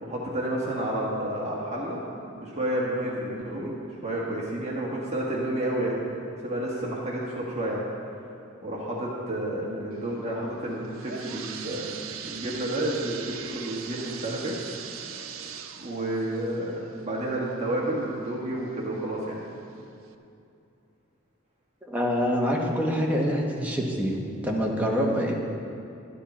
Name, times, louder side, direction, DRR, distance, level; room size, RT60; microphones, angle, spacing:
voice 1, 0.0-2.0 2.3-3.8 4.0-6.0 6.4-7.8 8.6-11.9 12.2-14.6 15.8-19.4, right 1 dB, 35° right, -4 dB, 1.5 m, -30 dB
sound 1, 10.7-18.3 18.8-18.9 19.6-19.7 20.1-20.2, right 7 dB, 85° right, 0.6 m, -40 dB
voice 2, 21.8-24.1 24.4-25.3, equal, 10° right, -2 dB, 1.3 m, -25 dB
12.0 x 9.9 x 4.3 m, 2.6 s
head